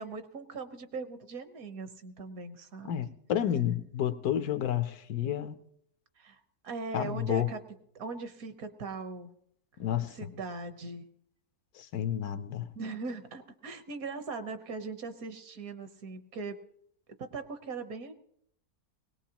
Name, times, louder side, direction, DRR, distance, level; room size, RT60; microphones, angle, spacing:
voice 1, 0.0-3.0 6.2-7.6 7.9-9.3 10.2-11.1 12.7-16.6 17.2-18.1, right 4 dB, 70° right, 1.4 m, -40 dB
voice 2, 2.9-5.5 6.9-7.5 9.8-10.2 11.7-12.6, left 10 dB, 85° left, 1.3 m, -30 dB
20.5 x 18.5 x 2.9 m
omnidirectional pair, 1.6 m